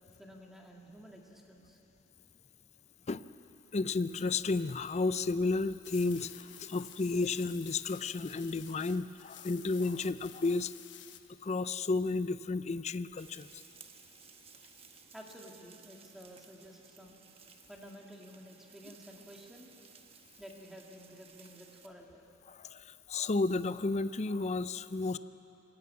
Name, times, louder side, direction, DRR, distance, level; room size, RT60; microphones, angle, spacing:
voice 1, 0.2-1.8 15.1-17.2 17.7-19.8 20.4-22.2, equal, ahead, -1 dB, 2.1 m, -52 dB
voice 2, 3.7-10.7 11.4-13.5 22.5-25.2, left 3 dB, 35° left, 14 dB, 0.5 m, -32 dB
sound 1, 5.8-11.2, left 11 dB, 70° left, 1.1 m, -52 dB
sound 2, 13.2-21.9, right 6 dB, 30° right, 1.1 m, -58 dB
22.0 x 15.5 x 9.5 m, 3.0 s
head